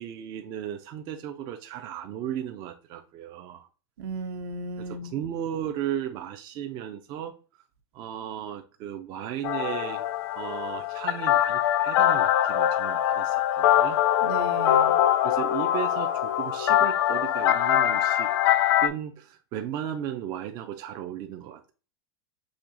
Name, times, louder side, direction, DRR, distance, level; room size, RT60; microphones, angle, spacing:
voice 1, 0.0-3.7 4.8-7.4 7.9-10.0 10.3-14.0 15.2-18.3 18.8-21.7, right 10 dB, 30° right, 0.3 m, -35 dB
voice 2, 4.0-5.1 14.2-15.0, right 3 dB, 70° right, 0.8 m, -35 dB
sound 1, 9.4-18.9, left 12 dB, 60° left, 0.4 m, -23 dB
6.1 x 2.8 x 2.5 m
supercardioid pair, 155°, 14 cm